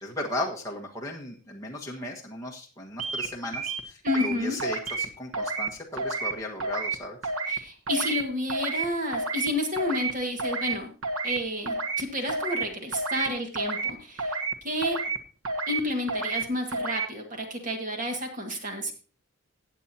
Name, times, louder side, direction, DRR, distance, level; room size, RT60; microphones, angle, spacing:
voice 1, 0.0-7.2, left 1 dB, 15° left, -2 dB, 1.5 m, -36 dB
sound 1, 3.0-3.3 3.5-4.3 4.6-5.1 5.3-5.7 6.0-6.3 6.6-7.0 7.2-7.6 7.9-8.2 8.5-8.8 9.1-9.5 9.8-10.1 10.4-10.7 11.0-11.4 11.7-12.0 12.3-12.6 12.9-13.3 13.5-13.9 14.2-14.5 14.8-15.2 15.4-15.8 16.1-16.4 16.7-17.1, right 3 dB, 75° right, 1.2 m, -30 dB
voice 2, 4.0-4.6 7.5-10.9 11.2-14.4 14.6-15.0 15.7-18.9, left 1 dB, 35° right, 3 dB, 1.9 m, -30 dB
16.0 x 8.2 x 2.9 m, 0.35 s
head